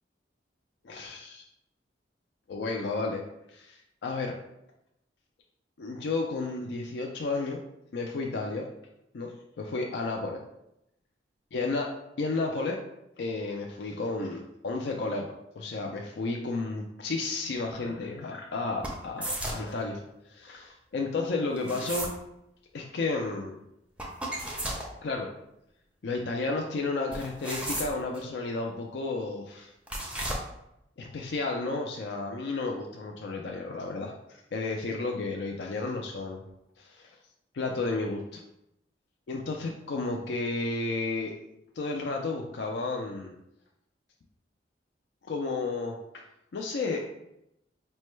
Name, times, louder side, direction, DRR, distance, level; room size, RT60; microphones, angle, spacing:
voice 1, 0.8-1.4 2.5-3.2 3.5-4.3 5.8-7.6 7.9-8.6 9.1-10.4 11.5-11.9 12.2-12.8 13.2-20.0 20.3-22.1 22.7-23.5 25.0-25.3 26.0-29.7 31.0-36.4 36.8-37.2 37.5-38.4 39.3-41.3 41.8-43.3 45.3-46.2 46.5-47.0, left 3 dB, 65° left, 1 dB, 0.4 m, -32 dB
sound 1, 18.8-19.7 21.6-22.2 24.0-24.9 27.1-28.2 29.9-30.4, right 1 dB, 5° right, 0.5 m, -34 dB
5.2 x 2.2 x 3.1 m, 0.82 s
head